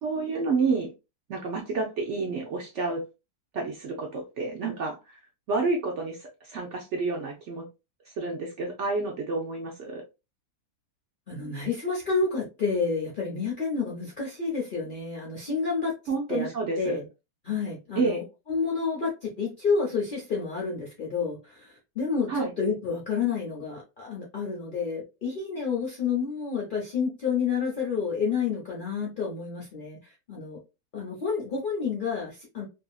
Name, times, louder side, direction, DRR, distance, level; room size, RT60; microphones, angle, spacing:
voice 1, 0.0-0.9 1.3-3.0 3.5-5.2 5.5-7.6 8.1-10.0 16.1-17.0 18.0-18.2 22.3-22.5, right 4 dB, 70° right, 1 dB, 0.7 m, -29 dB
voice 2, 11.3-15.9 16.3-16.5 16.8-17.0 17.4-30.6 30.9-32.6, left 5 dB, 55° left, -3 dB, 0.5 m, -29 dB
2.7 x 2.6 x 2.3 m, 0.27 s
omnidirectional pair, 1.7 m